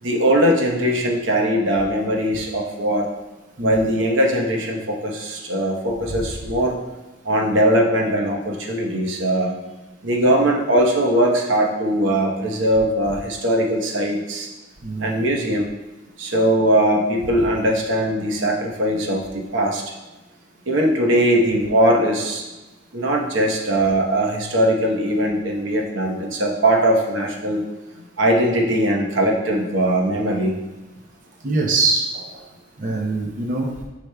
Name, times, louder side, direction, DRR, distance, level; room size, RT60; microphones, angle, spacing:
voice 1, 0.0-3.1 3.6-6.8 7.2-9.5 10.0-14.5 15.0-15.7 16.2-19.8 20.7-22.4 22.9-27.6 28.2-30.5, right 1 dB, 75° right, 0 dB, 1.0 m, -20 dB
voice 2, 3.6-3.9 6.1-6.2 14.8-15.2 31.4-32.4 32.8-33.7, right 3 dB, 45° right, -1 dB, 0.7 m, -23 dB
9.8 x 5.0 x 2.3 m, 1.1 s
head